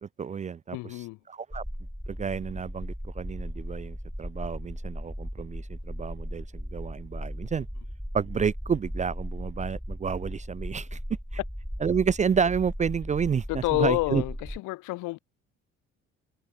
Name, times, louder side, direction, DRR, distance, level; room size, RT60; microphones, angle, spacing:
voice 1, 0.0-1.6 2.1-7.7 8.1-11.0 11.8-14.2, right 6 dB, 25° right, 0.4 m, -30 dB
voice 2, 0.7-1.2 13.5-15.2, left 21 dB, 75° left, 0.9 m, -29 dB
sound 1, 1.5-14.6, equal, ahead, 1.6 m, -37 dB
supercardioid pair, 65°, 31 cm